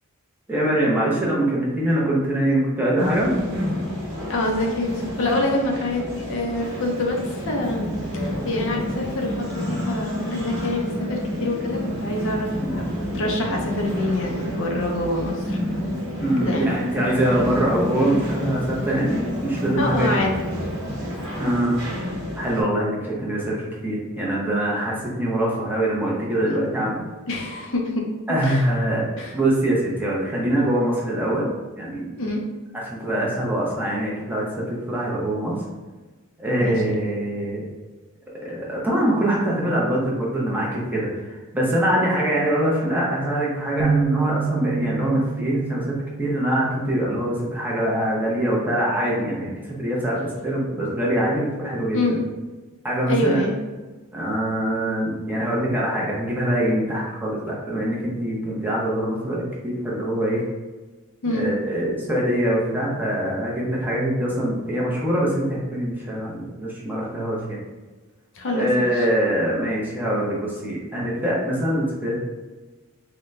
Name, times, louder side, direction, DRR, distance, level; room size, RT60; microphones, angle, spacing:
voice 1, 0.5-3.4 12.6-12.8 16.2-20.1 21.4-21.8 22.3-27.0 28.3-29.1 29.3-31.5 31.8-32.1 32.7-35.5 36.4-37.6 38.4-49.5 49.8-52.2 52.8-53.5 54.1-60.4 61.2-67.6 68.5-72.2, right 1 dB, 10° right, -5 dB, 0.7 m, -23 dB
sound 1, 3.0-22.6, left 1 dB, 55° right, 1.1 m, -31 dB
voice 2, 4.3-15.6 16.4-16.7 19.8-20.3 27.3-28.6 29.2-29.3 32.2-32.4 36.6-36.9 51.9-52.2 53.1-53.6 61.2-61.5 68.3-68.7, left 1 dB, 60° left, 1 dB, 0.6 m, -26 dB
Purr, 6.6-21.4, equal, 30° right, 1.0 m, -32 dB
sound 2, 43.8-47.3, right 5 dB, 80° right, 0.4 m, -28 dB
3.8 x 2.2 x 3.2 m, 1.2 s
head